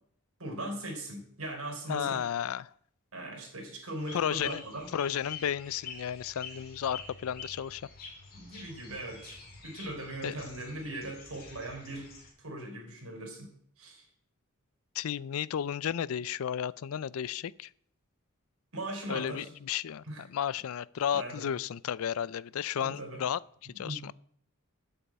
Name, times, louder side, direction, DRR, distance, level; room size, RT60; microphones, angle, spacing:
voice 1, 0.4-2.2 3.1-4.9 8.3-12.1 12.4-14.1 18.7-19.5 20.0-20.2 21.1-21.5 22.8-23.2 23.7-24.1, right 1 dB, 75° right, 4.0 m, -40 dB
voice 2, 1.9-2.7 4.1-4.6 4.9-7.9 10.2-10.3 14.9-17.7 19.1-24.1, left 9 dB, 70° left, 0.4 m, -33 dB
sound 1, 4.0-12.3, left 5 dB, 45° left, 3.4 m, -47 dB
8.8 x 7.1 x 8.6 m
head